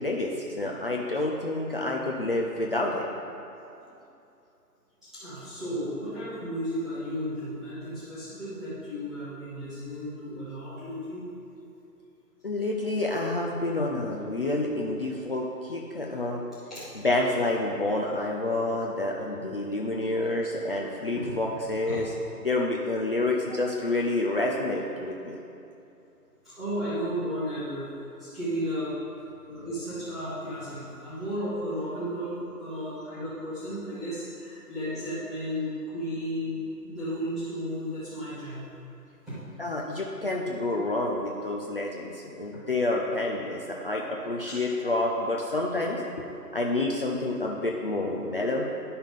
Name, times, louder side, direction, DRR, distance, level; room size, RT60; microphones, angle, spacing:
voice 1, 0.0-3.0 12.4-16.4 17.0-22.1 22.4-25.4 32.8-32.9 39.6-46.3 46.5-48.7, left 2 dB, 35° left, -2 dB, 0.6 m, -28 dB
voice 2, 5.0-11.2 16.7-16.8 21.1-21.3 21.9-22.0 26.4-27.8 28.2-28.9 29.4-38.7 39.3-39.4 44.7-44.9, equal, ahead, -18 dB, 0.8 m, -34 dB
10.5 x 5.5 x 5.5 m, 2.7 s
figure-of-eight pair, 150°, 48 cm